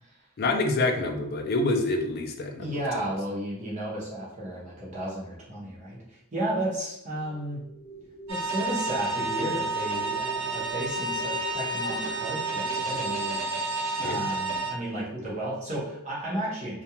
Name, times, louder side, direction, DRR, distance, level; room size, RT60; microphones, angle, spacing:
voice 1, 0.4-2.7 14.0-14.3, left 2 dB, 50° left, 5 dB, 0.3 m, -26 dB
voice 2, 2.6-7.6 8.3-13.4 14.0-16.8, right 1 dB, 35° right, -6 dB, 0.8 m, -33 dB
sound 1, 7.1-13.4, right 6 dB, 5° right, 0.8 m, -42 dB
sound 2, 8.3-14.7, right 2 dB, 85° right, 0.7 m, -30 dB
2.4 x 2.1 x 2.9 m, 0.79 s
head